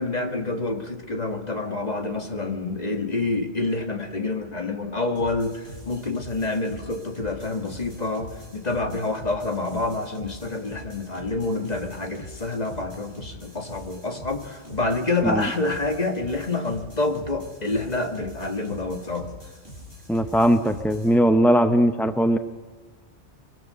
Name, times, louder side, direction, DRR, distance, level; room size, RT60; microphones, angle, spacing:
voice 1, 0.0-19.3, left 2 dB, 35° left, 5 dB, 2.1 m, -27 dB
sound 1, 5.2-21.2, left 1 dB, 50° left, 6.8 m, -43 dB
voice 2, 20.1-22.4, equal, ahead, 8 dB, 0.7 m, -19 dB
24.5 x 23.0 x 6.9 m, 1.3 s
omnidirectional pair, 1.2 m